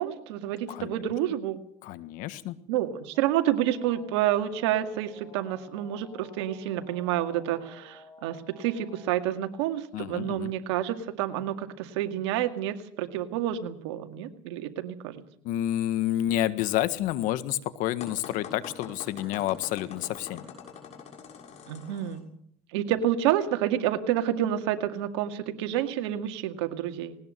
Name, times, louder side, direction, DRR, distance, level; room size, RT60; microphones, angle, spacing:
voice 1, 0.0-1.6 2.7-15.2 21.7-22.3 22.7-27.2, right 11 dB, 90° right, 7 dB, 2.1 m, -29 dB
voice 2, 1.8-2.6 9.9-10.5 15.4-20.4, left 13 dB, 70° left, 13 dB, 1.6 m, -29 dB
sound 1, 3.1-9.1, left 3 dB, 30° left, 6.7 m, -52 dB
sound 2, 18.0-22.2, left 7 dB, 55° left, 6.9 m, -44 dB
19.5 x 19.5 x 7.7 m, 0.66 s
supercardioid pair, 95°, 14 cm